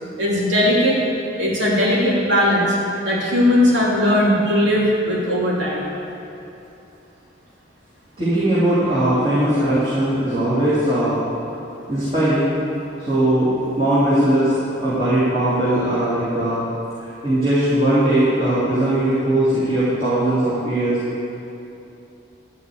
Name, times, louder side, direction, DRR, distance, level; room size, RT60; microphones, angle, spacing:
voice 1, 0.2-1.0 1.4-2.7 3.0-5.9, left 1 dB, 80° right, -6 dB, 3.1 m, -18 dB
voice 2, 8.2-11.2 11.9-12.5 13.1-16.6 17.0-21.0, right 1 dB, 30° right, -12 dB, 2.9 m, -19 dB
13.0 x 4.8 x 8.6 m, 2.8 s
head